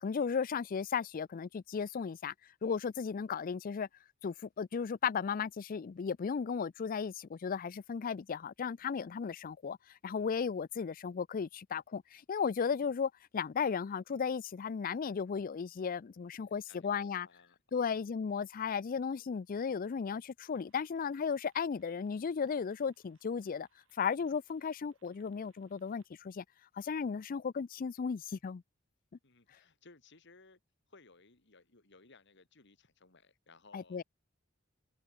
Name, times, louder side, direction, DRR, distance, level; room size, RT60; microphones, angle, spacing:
voice 1, 0.0-2.3 2.6-3.9 4.2-9.8 10.0-17.3 17.7-23.7 24.0-26.4 26.8-28.6 33.7-34.0, left 6 dB, 45° left, 0.4 m, -35 dB
voice 2, 16.4-18.1 29.2-30.6 30.9-34.0, left 3 dB, 60° left, 2.6 m, -61 dB
sound 1, 20.5-26.1, right 6 dB, 75° right, 7.3 m, -76 dB
head